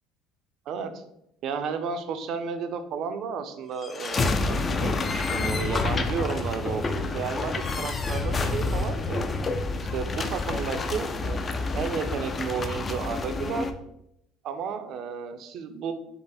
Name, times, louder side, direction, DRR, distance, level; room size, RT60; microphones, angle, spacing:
voice 1, 0.7-1.0 1.4-4.4 4.7-5.0 5.3-9.3 9.9-13.7 14.4-15.9, right 6 dB, 50° right, 8 dB, 0.5 m, -32 dB
sound 1, 3.8-13.7, left 3 dB, 20° left, 0.3 m, -28 dB
5.2 x 2.0 x 4.1 m, 0.77 s
cardioid pair, 155°, 0 cm